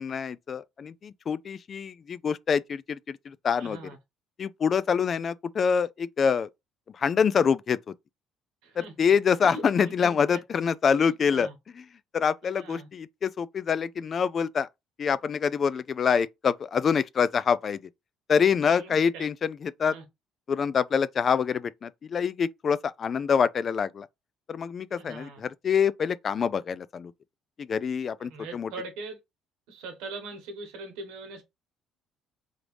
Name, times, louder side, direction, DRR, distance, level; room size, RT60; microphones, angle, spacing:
voice 1, 0.0-3.8 4.4-6.5 7.0-7.8 9.0-11.5 12.1-14.7 15.0-17.8 18.3-19.9 20.5-24.1 24.5-27.1 27.6-28.7, left 6 dB, 40° left, 0.3 m, -26 dB
voice 2, 3.6-4.0 8.6-8.9 9.4-10.4 10.9-11.5 12.5-12.9 18.7-19.3 19.9-20.0 24.9-25.4 28.2-29.2 29.7-31.4, right 3 dB, 90° right, 1.4 m, -41 dB
3.9 x 3.2 x 3.2 m
cardioid pair, 105°, 0 cm